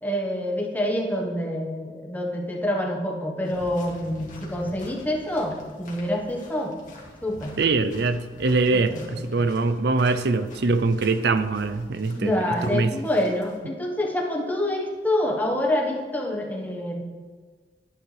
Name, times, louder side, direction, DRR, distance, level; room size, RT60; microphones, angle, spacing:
voice 1, 0.0-6.7 7.2-7.6 8.7-9.2 12.1-17.0, left 1 dB, 10° left, 0 dB, 1.3 m, -27 dB
sound 1, 3.4-13.6, left 1 dB, 45° left, 2.1 m, -47 dB
voice 2, 7.6-12.4 12.7-12.9, right 3 dB, 65° right, 11 dB, 0.6 m, -23 dB
11.5 x 9.8 x 3.4 m, 1.5 s
head